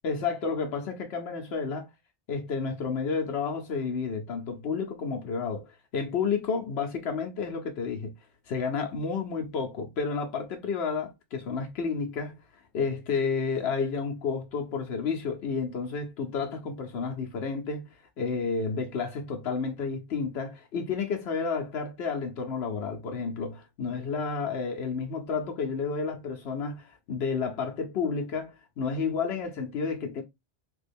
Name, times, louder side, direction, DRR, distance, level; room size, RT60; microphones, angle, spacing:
voice 1, 0.0-1.9 2.3-8.1 8.5-12.4 12.7-30.2, left 5 dB, 90° left, 0.9 m, -31 dB
3.3 x 2.3 x 3.4 m
omnidirectional pair, 1.0 m